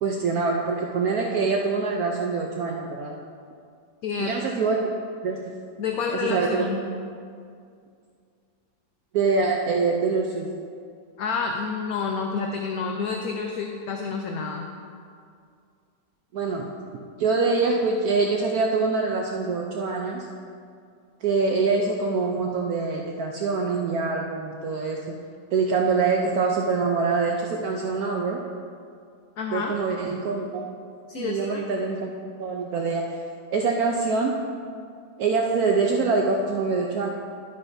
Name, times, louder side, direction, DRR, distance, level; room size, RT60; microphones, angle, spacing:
voice 1, 0.0-3.2 4.2-4.9 5.2-5.4 6.1-6.7 9.1-10.5 16.3-16.7 17.2-20.3 21.2-25.1 25.5-28.4 29.5-30.7 31.1-32.1 32.4-33.2 33.5-34.3 35.2-37.1, right 4 dB, 65° right, 0 dB, 1.0 m, -24 dB
voice 2, 5.8-6.8 11.2-14.7 29.4-29.7 31.1-31.6, left 5 dB, 65° left, 2 dB, 0.9 m, -29 dB
11.5 x 8.9 x 2.6 m, 2.3 s
omnidirectional pair, 1.9 m